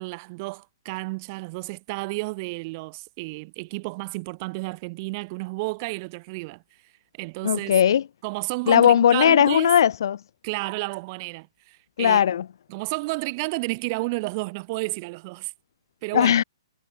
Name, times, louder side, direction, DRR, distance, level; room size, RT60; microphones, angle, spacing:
voice 1, 0.0-6.6 7.2-7.7 8.2-9.7 10.4-12.3 12.7-15.5 16.0-16.4, right 26 dB, 40° right, 7.2 m, -31 dB
voice 2, 7.4-8.0 8.7-10.2 12.0-12.4 16.1-16.4, left 9 dB, 65° left, 2.2 m, -18 dB
hypercardioid pair, 130°, 2 cm